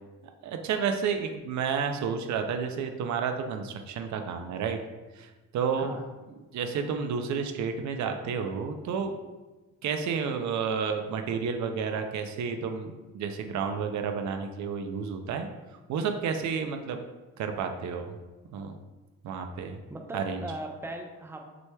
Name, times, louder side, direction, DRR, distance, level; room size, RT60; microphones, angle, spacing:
voice 1, 0.4-4.8 5.2-6.0 6.5-9.1 9.8-15.5 15.9-17.0 17.4-18.2 18.5-18.8 19.2-19.8 20.1-20.4, right 6 dB, 70° right, 6 dB, 0.5 m, -31 dB
voice 2, 19.9-21.4, right 1 dB, 10° right, 2 dB, 0.6 m, -38 dB
6.0 x 3.1 x 2.2 m, 1.2 s
cardioid pair, 90°, 30 cm